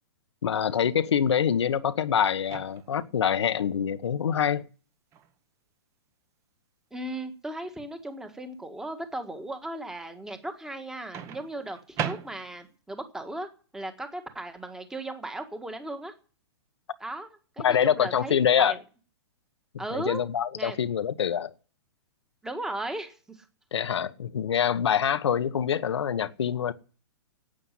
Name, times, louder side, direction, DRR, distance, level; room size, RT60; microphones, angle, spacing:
voice 1, 0.4-4.7 17.6-18.7 19.7-21.5 23.7-26.7, left 8 dB, 85° left, 1.2 m, -25 dB
Microwave oven, 2.4-3.1 5.1-5.3 11.1-12.8, right 9 dB, 20° right, 1.2 m, -36 dB
voice 2, 6.9-13.5 13.7-16.1 17.0-17.3 17.6-18.8 19.8-20.2 20.5-20.8 22.4-23.4, right 1 dB, 5° right, 1.6 m, -36 dB
12.0 x 8.9 x 9.9 m
hypercardioid pair, 160°, 14 cm